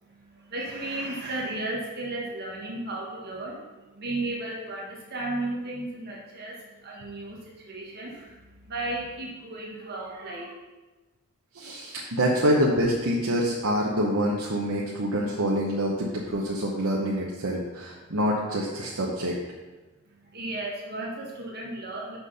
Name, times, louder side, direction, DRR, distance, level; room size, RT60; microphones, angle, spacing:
voice 1, 0.0-10.5 20.0-22.2, right 2 dB, 50° right, -3 dB, 1.5 m, -34 dB
voice 2, 11.5-19.4, equal, 80° right, -4 dB, 1.0 m, -26 dB
6.0 x 6.0 x 5.5 m, 1.2 s
head